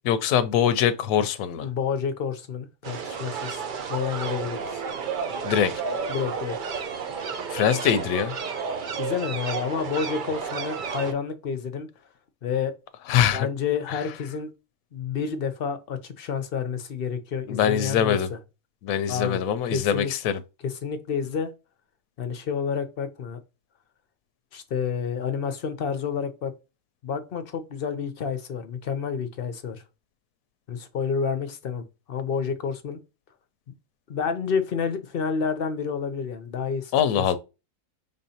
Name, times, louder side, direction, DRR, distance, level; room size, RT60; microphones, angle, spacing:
voice 1, 0.0-1.7 5.4-5.7 7.5-8.3 13.1-13.5 13.9-14.0 17.5-18.3 18.8-20.4 36.9-37.4, left 9 dB, 75° left, 1.0 m, -23 dB
voice 2, 1.6-3.6 3.9-4.8 6.1-6.6 9.0-11.9 12.4-12.7 13.1-14.5 14.9-18.4 19.1-19.4 19.7-20.1 20.6-21.5 22.2-23.4 24.5-26.5 27.0-29.8 30.7-33.0 34.1-37.3, left 6 dB, 55° left, 0.7 m, -29 dB
sound 1, 2.8-11.1, right 6 dB, 60° right, 0.5 m, -32 dB
5.2 x 3.6 x 2.7 m
omnidirectional pair, 1.5 m